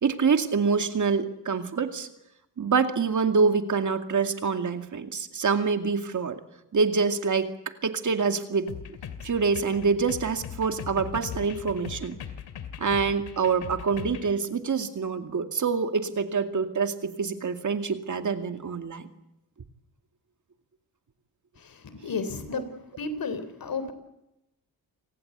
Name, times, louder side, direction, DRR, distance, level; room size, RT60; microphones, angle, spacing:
voice 1, 0.0-2.1 2.6-6.4 6.7-7.5 7.8-8.7 9.2-12.2 12.8-19.1 22.5-22.6, right 5 dB, 50° right, 2.4 m, -26 dB
sound 1, 8.7-14.3, left 8 dB, 90° left, 2.4 m, -39 dB
voice 2, 21.6-22.7 23.0-23.9, left 4 dB, 65° left, 3.8 m, -33 dB
28.5 x 18.5 x 8.2 m
cardioid pair, 80°, 38 cm